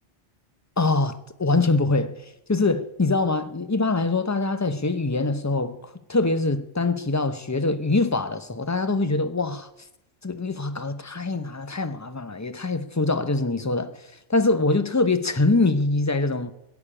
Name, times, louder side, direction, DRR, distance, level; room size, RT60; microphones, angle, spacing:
voice 1, 0.8-9.7 10.2-16.5, left 3 dB, 20° left, 0.6 m, -24 dB
17.0 x 7.2 x 9.9 m
omnidirectional pair, 1.2 m